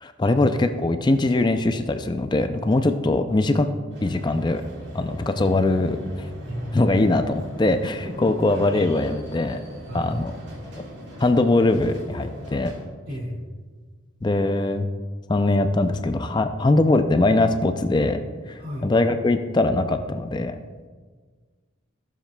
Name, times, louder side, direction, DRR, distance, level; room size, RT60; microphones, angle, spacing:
voice 1, 0.0-3.7 4.0-4.6 4.9-6.3 6.7-9.6 9.9-10.3 11.2-12.7 14.2-14.9 15.3-18.2 18.5-20.6, left 2 dB, 20° left, 8 dB, 0.4 m, -21 dB
sound 1, 3.9-12.8, equal, 60° right, 1.8 m, -39 dB
voice 2, 8.0-8.5 9.9-10.2 13.1-13.4 18.6-18.9, equal, 90° right, -2 dB, 2.5 m, -33 dB
14.5 x 7.3 x 2.3 m, 1.5 s
head